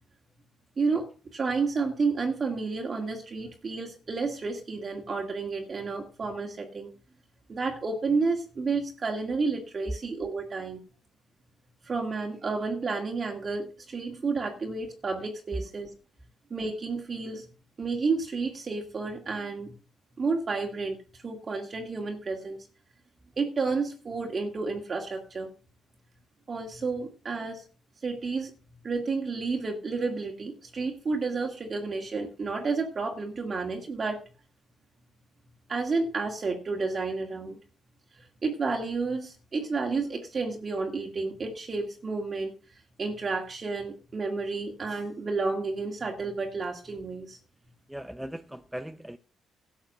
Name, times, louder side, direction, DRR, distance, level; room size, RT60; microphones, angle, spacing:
voice 1, 0.8-6.9 7.5-10.8 11.8-15.9 16.5-17.5 17.8-19.7 20.2-21.0 21.2-22.6 23.4-25.5 26.5-27.6 28.0-28.5 28.8-34.2 35.7-37.6 38.2-42.6 43.0-47.4, right 4 dB, 40° right, 2.0 m, -31 dB
voice 2, 47.9-49.2, right 1 dB, 5° right, 0.6 m, -39 dB
12.0 x 7.1 x 6.4 m
cardioid pair, 90°, 0 cm